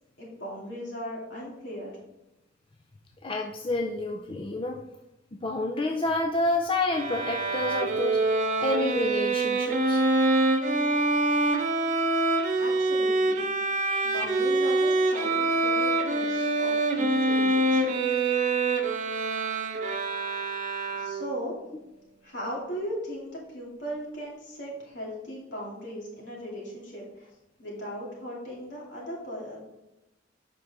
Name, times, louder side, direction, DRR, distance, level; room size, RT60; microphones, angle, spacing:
voice 1, 0.2-1.9 12.6-13.5 14.0-17.9 20.9-21.5 22.2-27.3 27.6-29.6, equal, 70° left, -4 dB, 2.6 m, -38 dB
voice 2, 3.2-4.8 5.3-8.4 8.6-10.0, left 2 dB, 30° left, 2 dB, 0.5 m, -29 dB
Bowed string instrument, 6.9-21.4, right 2 dB, 45° right, 0.8 m, -25 dB
7.6 x 5.3 x 3.5 m, 0.96 s
head